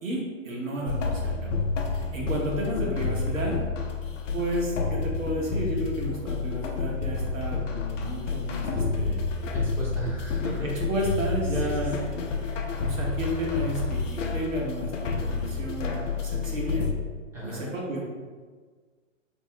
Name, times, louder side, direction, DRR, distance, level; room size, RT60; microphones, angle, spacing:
voice 1, 0.0-1.6 1.9-3.6 4.3-9.2 10.6-12.0 12.2-16.9 17.4-18.0, right 1 dB, 75° right, -3 dB, 1.1 m, -32 dB
sound 1, 0.9-16.9, left 4 dB, 65° left, 0.6 m, -29 dB
voice 2, 9.5-10.7 11.4-12.0 12.4-12.6 17.3-17.6, right 1 dB, 5° right, -8 dB, 0.6 m, -36 dB
3.0 x 2.0 x 3.7 m, 1.5 s
figure-of-eight pair, 120°, 39 cm